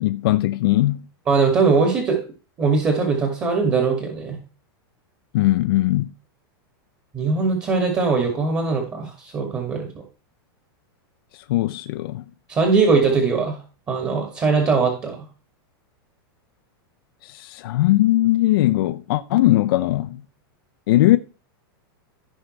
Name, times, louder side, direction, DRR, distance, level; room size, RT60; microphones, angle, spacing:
voice 1, 0.0-1.1 5.3-6.1 11.3-12.2 17.2-20.2 20.9-21.2, left 16 dB, 65° left, 0.5 m, -19 dB
voice 2, 1.3-2.2 2.6-4.4 7.1-10.0 12.5-13.6 13.9-15.3, right 4 dB, 25° right, 2.3 m, -20 dB
15.0 x 5.5 x 3.3 m
hypercardioid pair, 130°, 13 cm